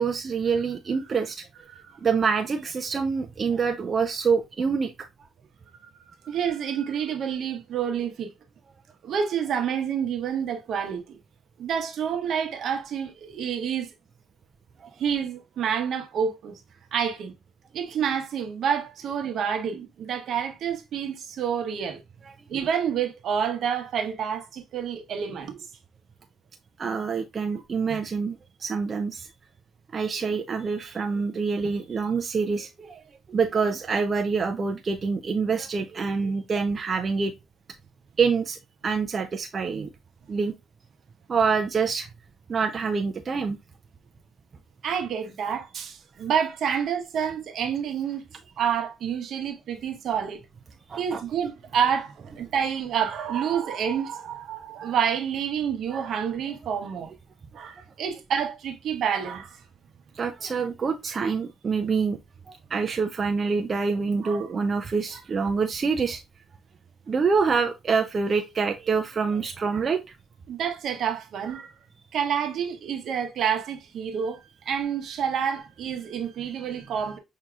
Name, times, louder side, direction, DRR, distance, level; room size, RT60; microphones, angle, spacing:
voice 1, 0.0-1.5 2.0-4.9 26.8-29.3 29.9-33.0 33.3-37.3 38.2-38.6 38.8-39.9 40.3-40.5 41.3-42.1 42.5-43.6 50.9-51.2 60.2-62.2 62.5-66.2 67.1-70.0, right 5 dB, 40° right, 0.4 m, -26 dB
voice 2, 6.2-8.3 9.0-11.2 11.6-13.9 15.0-16.5 16.9-17.3 17.7-22.0 22.5-25.6 27.5-27.6 27.9-28.0 39.7-39.9 44.8-48.2 48.6-50.4 51.0-57.1 57.5-59.6 64.2-64.5 69.7-69.8 70.5-71.7 72.1-77.2, right 8 dB, 70° right, 0.9 m, -28 dB
5.9 x 2.8 x 2.4 m
cardioid pair, 90°, 0 cm